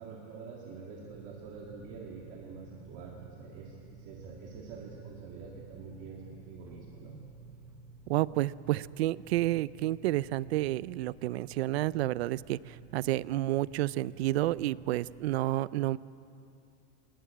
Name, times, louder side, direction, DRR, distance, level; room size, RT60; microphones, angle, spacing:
voice 1, 0.0-7.2, right 4 dB, 35° right, -1 dB, 1.9 m, -46 dB
sound 1, 1.1-15.4, right 4 dB, 5° right, 0.6 m, -52 dB
voice 2, 8.1-16.0, right 16 dB, 60° right, 20 dB, 0.5 m, -30 dB
21.0 x 19.0 x 9.1 m, 2.7 s
supercardioid pair, 175°, 36 cm